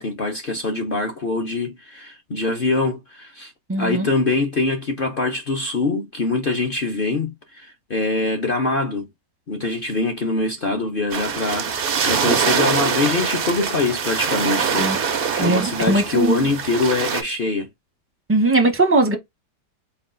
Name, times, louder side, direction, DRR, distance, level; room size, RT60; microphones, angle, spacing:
voice 1, 0.0-3.5 3.8-9.1 9.5-17.7, left 3 dB, 50° left, 0.6 m, -24 dB
voice 2, 3.7-4.1 14.8-15.0 15.3-16.5 18.3-19.2, right 2 dB, 15° right, 0.5 m, -19 dB
sound 1, 11.1-17.2, right 6 dB, 70° right, 0.5 m, -23 dB
4.4 x 2.3 x 3.7 m
omnidirectional pair, 1.8 m